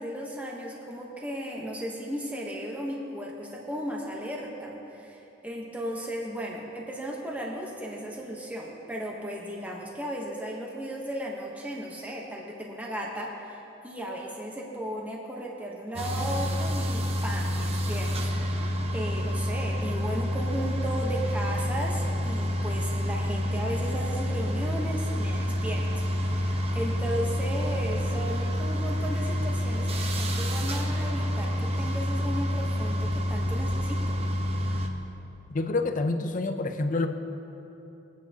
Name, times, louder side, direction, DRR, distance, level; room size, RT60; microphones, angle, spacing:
voice 1, 0.0-34.2, equal, 10° right, -2 dB, 1.0 m, -35 dB
sound 1, 16.0-34.9, equal, 30° right, 0.8 m, -28 dB
voice 2, 35.5-37.1, left 3 dB, 45° left, 7 dB, 0.6 m, -27 dB
20.5 x 9.4 x 2.9 m, 3.0 s
head